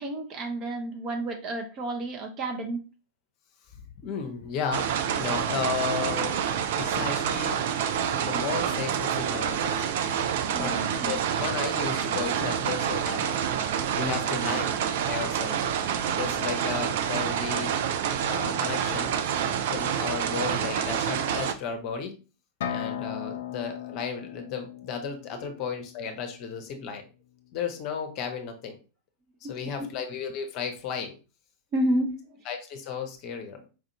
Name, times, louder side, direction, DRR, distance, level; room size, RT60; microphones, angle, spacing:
voice 1, 0.0-2.8 10.5-11.2 14.0-14.6 25.4-25.5 29.8-29.9 31.7-32.4, right 1 dB, 35° right, 3 dB, 0.8 m, -31 dB
voice 2, 4.0-6.4 6.7-7.7 8.2-9.8 10.5-13.4 13.9-14.7 15.1-15.6 16.2-17.8 18.2-19.2 19.7-22.1 22.7-27.1 27.5-28.8 29.5-31.2 32.5-33.6, left 6 dB, 40° left, 5 dB, 0.7 m, -34 dB
sound 1, 4.7-21.5, right 8 dB, 55° right, 0.3 m, -28 dB
sound 2, 22.6-26.4, left 9 dB, 55° left, 0.3 m, -37 dB
4.6 x 2.5 x 2.8 m, 0.33 s
figure-of-eight pair, 90°, 0 cm